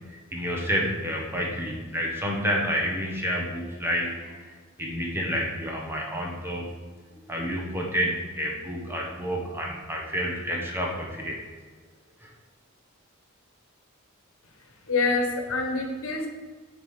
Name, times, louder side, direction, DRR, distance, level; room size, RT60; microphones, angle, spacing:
voice 1, 0.3-4.4 4.8-6.7 7.3-11.4 12.2-12.3, equal, 10° right, -1 dB, 1.4 m, -29 dB
voice 2, 14.9-16.3, left 3 dB, 80° left, 4 dB, 1.2 m, -26 dB
8.3 x 4.2 x 5.4 m, 1.4 s
head